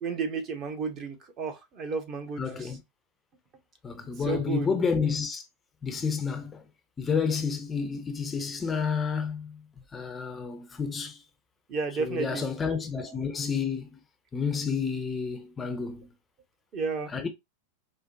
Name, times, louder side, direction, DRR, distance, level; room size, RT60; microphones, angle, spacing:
voice 1, 0.0-2.7 4.3-4.7 11.7-12.4 16.7-17.1, right 4 dB, 35° right, 1.0 m, -32 dB
voice 2, 2.4-2.8 3.8-5.4 5.8-6.6 7.0-9.6 9.9-11.2 12.0-14.0 14.3-16.1 17.1-17.3, left 5 dB, 15° left, 0.6 m, -30 dB
4.8 x 2.2 x 2.6 m
figure-of-eight pair, 90°, 0 cm